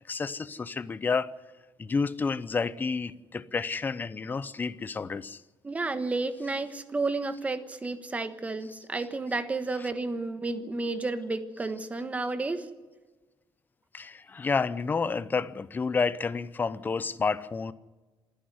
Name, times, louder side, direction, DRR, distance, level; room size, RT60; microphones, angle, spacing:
voice 1, 0.1-1.3 1.8-5.4 9.8-9.9 13.9-17.7, left 4 dB, 20° left, 0.7 m, -30 dB
voice 2, 5.6-12.7, right 3 dB, 15° right, 1.3 m, -31 dB
27.0 x 10.0 x 9.5 m
cardioid pair, 170°, 9 cm